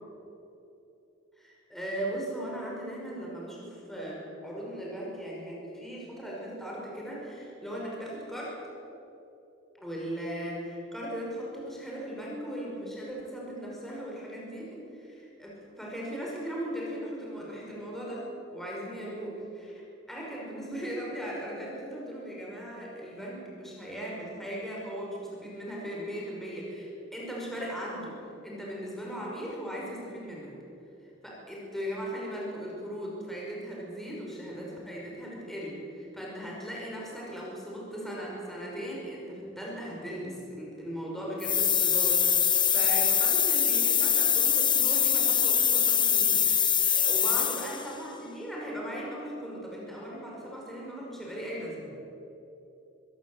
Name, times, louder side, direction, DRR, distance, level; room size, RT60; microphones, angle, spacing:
voice 1, 1.4-8.6 9.8-19.8 20.1-28.2 28.4-30.5 31.2-51.9, equal, ahead, -4 dB, 5.6 m, -38 dB
sound 1, 41.4-47.9, left 8 dB, 25° left, 1.1 m, -24 dB
25.5 x 16.5 x 8.1 m, 2.9 s
head